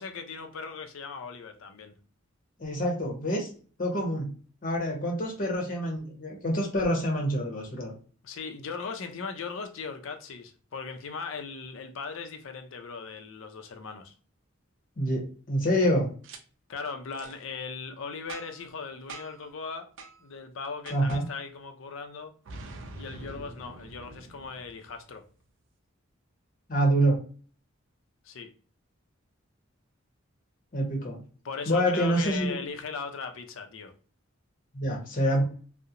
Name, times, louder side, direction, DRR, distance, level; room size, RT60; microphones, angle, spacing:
voice 1, 0.0-1.9 8.2-14.1 16.7-19.9 20.2-22.3 23.0-25.2 28.2-28.5 31.4-33.9, left 5 dB, 70° left, 0.5 m, -38 dB
voice 2, 2.6-3.5 3.8-4.3 4.6-7.9 15.0-16.1 20.9-21.3 26.7-27.2 30.7-31.2 31.7-32.6 34.7-35.4, equal, 40° left, 0.8 m, -26 dB
Boom, 16.2-16.4 17.1-17.3 18.3-18.7 19.1-19.5 20.0-20.1 20.9-21.2 22.5-25.2, right 3 dB, 65° right, 0.4 m, -44 dB
2.8 x 2.0 x 2.4 m
head